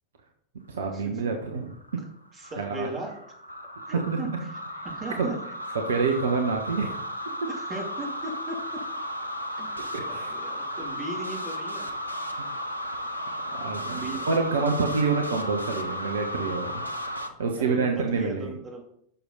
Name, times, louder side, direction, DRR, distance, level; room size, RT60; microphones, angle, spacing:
voice 1, 0.7-2.0 2.6-2.9 4.1-4.2 4.8-4.9 5.2-5.3 5.8-7.0 9.9-10.3 13.5-16.8 17.4-18.5, right 4 dB, 65° right, 3 dB, 1.2 m, -27 dB
sound 1, 1.4-17.3, equal, 85° left, 1.0 m, -35 dB
voice 2, 2.3-3.1 3.9-5.4 7.5-8.8 9.6-9.7 10.1-11.9 13.9-14.3 17.6-18.8, right 2 dB, 25° right, 0 dB, 3.0 m, -37 dB
11.5 x 7.1 x 4.0 m, 0.68 s
figure-of-eight pair, 90°, 0 cm